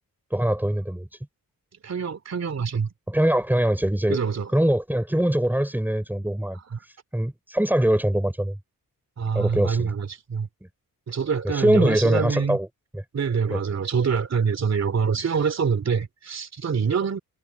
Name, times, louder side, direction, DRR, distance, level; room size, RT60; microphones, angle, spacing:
voice 1, 0.3-1.1 3.1-4.2 4.5-6.6 7.1-8.6 9.3-9.9 11.4-12.7 12.9-13.0 13.5-13.6, right 1 dB, 5° right, 6.0 m, -22 dB
voice 2, 1.8-2.9 4.1-4.5 6.7-6.8 9.2-10.5 11.1-12.6 13.1-17.2, right 6 dB, 45° right, 2.8 m, -25 dB
wide cardioid pair, 145°, 35 cm